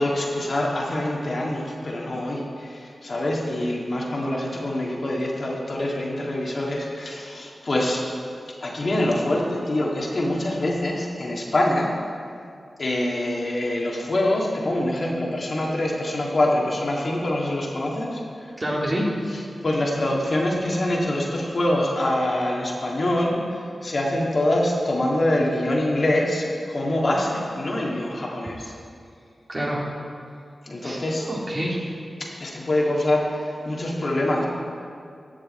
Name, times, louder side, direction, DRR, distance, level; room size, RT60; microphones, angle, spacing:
voice 1, 0.0-8.0 8.6-11.9 12.8-18.2 19.3-28.7 30.6-31.3 32.2-34.5, left 1 dB, 60° left, -2 dB, 2.0 m, -25 dB
voice 2, 18.6-19.1 28.2-28.3 29.5-29.9 30.8-32.0, equal, 35° right, -3 dB, 2.5 m, -28 dB
14.5 x 7.5 x 4.3 m, 2.3 s
cardioid pair, 45°, 0 cm